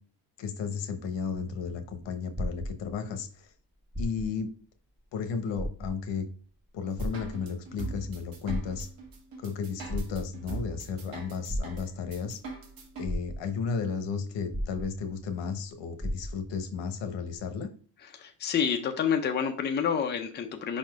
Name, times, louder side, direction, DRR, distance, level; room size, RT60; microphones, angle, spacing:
voice 1, 0.4-3.5 4.0-4.5 5.1-6.3 6.7-8.9 9.4-12.4 13.0-17.7, left 6 dB, 75° left, 8 dB, 1.1 m, -34 dB
sound 1, 2.4-3.2 3.8-4.5 4.9-5.0 5.5-6.2 7.0-7.8 8.3-9.2 9.9-10.6 11.5-12.2 12.7-12.8 13.0-13.8 14.5-15.3 15.6-15.7 16.0-16.6 17.3-17.4, equal, 10° right, 1.6 m, -35 dB
sound 2, 7.0-13.0, right 4 dB, 50° right, 1.4 m, -42 dB
voice 2, 18.2-20.8, left 7 dB, 25° left, 4 dB, 0.6 m, -28 dB
5.3 x 4.3 x 4.5 m, 0.41 s
cardioid pair, 155°, 43 cm